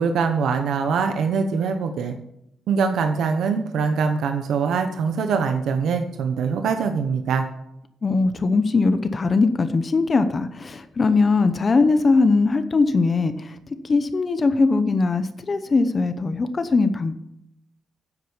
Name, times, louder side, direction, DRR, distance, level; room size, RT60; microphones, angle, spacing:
voice 1, 0.0-2.2 2.7-7.4, right 5 dB, 75° right, 6 dB, 1.0 m, -23 dB
voice 2, 8.0-13.6 13.8-17.1, left 3 dB, 30° left, 10 dB, 0.8 m, -20 dB
10.0 x 8.2 x 7.2 m, 0.79 s
cardioid pair, 155°, 0 cm